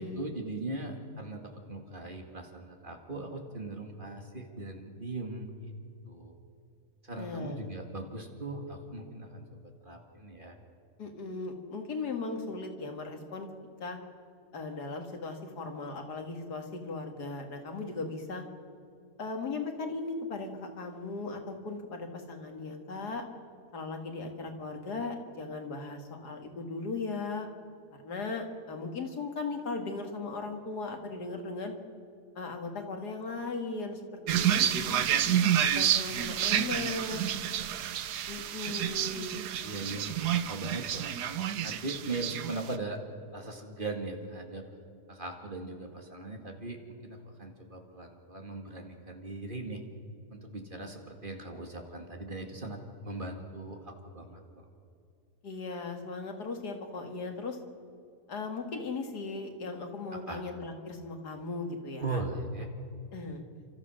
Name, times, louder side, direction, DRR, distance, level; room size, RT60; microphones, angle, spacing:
voice 1, 0.0-5.7 6.0-6.3 7.0-10.6 34.2-34.5 34.8-35.0 39.6-41.1 41.6-43.0 43.3-44.7 45.1-49.8 50.3-54.6 60.3-60.4 62.0-62.7, right 2 dB, 30° right, 3 dB, 2.1 m, -39 dB
voice 2, 7.2-7.7 11.0-13.5 13.8-14.0 14.5-18.4 19.2-23.3 23.7-27.5 28.0-31.7 32.4-35.1 35.8-37.2 38.3-39.5 55.4-57.6 58.3-62.2 63.1-63.4, left 3 dB, 75° left, 4 dB, 2.4 m, -37 dB
sound 1, 34.3-42.8, right 10 dB, 80° right, 1.3 m, -29 dB
30.0 x 14.0 x 6.4 m, 2.5 s
omnidirectional pair, 1.7 m